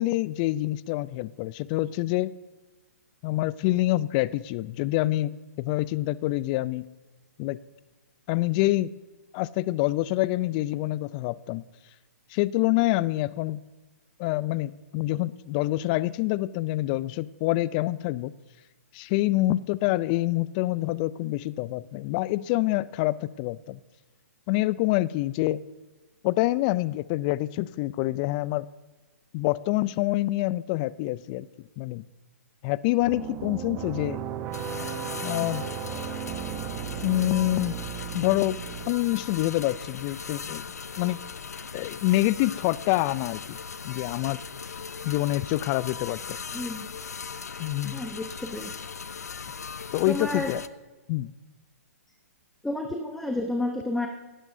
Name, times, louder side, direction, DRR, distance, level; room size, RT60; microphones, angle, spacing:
voice 1, 0.0-2.3 3.2-6.9 7.4-7.6 8.3-8.9 9.3-11.6 12.3-13.6 14.2-18.3 18.9-23.8 24.5-25.6 26.2-28.7 29.3-31.5 31.8-32.0 32.6-34.2 35.2-35.7 37.0-37.8 38.1-38.6 38.9-40.6 41.0-41.2 41.7-43.6 43.8-44.4 45.0-46.4 47.6-48.0 49.9-50.6 51.1-51.3, left 17 dB, 30° left, 20 dB, 0.3 m, -26 dB
sound 1, 33.0-38.9, right 9 dB, 25° right, 0.8 m, -35 dB
sound 2, 34.5-50.7, left 6 dB, 85° left, 0.5 m, -39 dB
voice 2, 46.5-46.9 47.9-48.7 50.1-50.5 52.6-54.1, left 2 dB, 5° left, 3 dB, 0.8 m, -30 dB
17.5 x 10.5 x 2.6 m, 1.2 s
hypercardioid pair, 130°, 8 cm